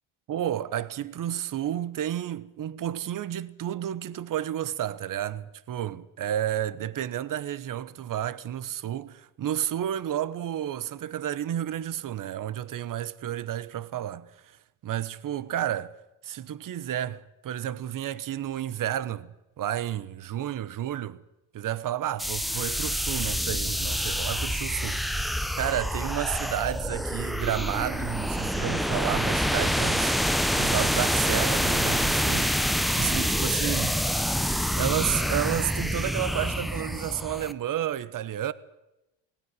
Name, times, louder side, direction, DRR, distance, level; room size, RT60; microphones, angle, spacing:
voice 1, 0.3-16.0 16.2-21.2 21.5-34.0 34.5-38.5, right 11 dB, 50° right, 1.1 m, -31 dB
sound 1, 22.2-37.5, equal, ahead, 0.8 m, -27 dB
19.5 x 17.0 x 9.7 m
cardioid pair, 95°, 41 cm